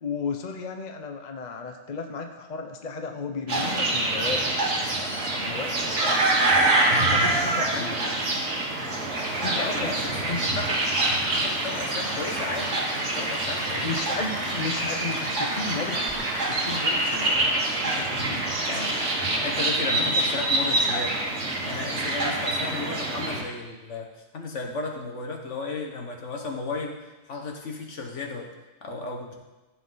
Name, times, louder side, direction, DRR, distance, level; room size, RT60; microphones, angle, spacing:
voice 1, 0.0-4.6 5.4-6.2 7.0-8.2 9.4-10.4 13.8-17.4 17.8-18.5 20.0-20.1, left 4 dB, 40° left, 4 dB, 0.9 m, -34 dB
sound 1, 3.5-23.4, right 2 dB, 75° right, 2.0 m, -26 dB
voice 2, 7.7-8.2 9.5-10.8 11.3-14.1 14.4-14.5 18.6-18.9 19.4-21.2 21.6-27.0 27.3-28.5 28.8-29.3, left 3 dB, 75° left, 2 dB, 1.7 m, -34 dB
Applause, 10.1-17.4, right 1 dB, 20° right, 1.6 m, -37 dB
14.5 x 7.5 x 4.0 m, 1.1 s
omnidirectional pair, 1.3 m